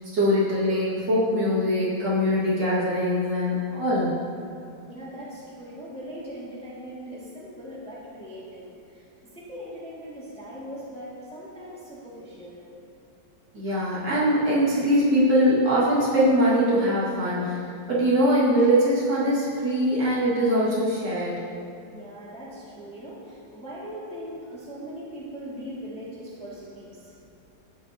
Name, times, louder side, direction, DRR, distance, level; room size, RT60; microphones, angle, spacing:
voice 1, 0.1-4.2 13.5-17.6 17.9-21.4, equal, 60° right, -8 dB, 2.6 m, -22 dB
voice 2, 4.9-9.1 9.3-12.7 21.9-27.2, equal, 5° left, -8 dB, 1.9 m, -40 dB
12.0 x 9.0 x 2.8 m, 2.7 s
omnidirectional pair, 2.2 m